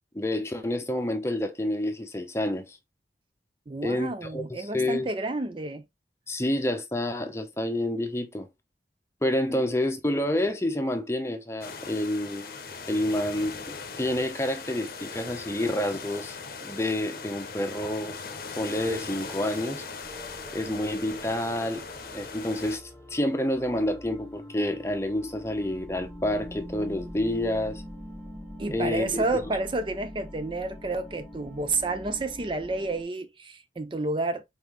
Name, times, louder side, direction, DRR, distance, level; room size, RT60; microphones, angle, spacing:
voice 1, 0.1-2.8 3.8-5.1 6.3-8.5 9.2-12.6 12.9-13.6 14.0-18.2 18.6-19.8 20.5-21.8 22.1-27.8 28.7-29.2, left 1 dB, 15° left, 0.8 m, -28 dB
voice 2, 3.7-5.8 9.5-9.6 28.6-34.4, right 2 dB, 25° right, 0.5 m, -30 dB
sound 1, 11.6-22.8, left 4 dB, 50° left, 0.8 m, -39 dB
sound 2, 20.0-33.0, equal, 5° right, 1.3 m, -44 dB
4.3 x 3.9 x 3.1 m
head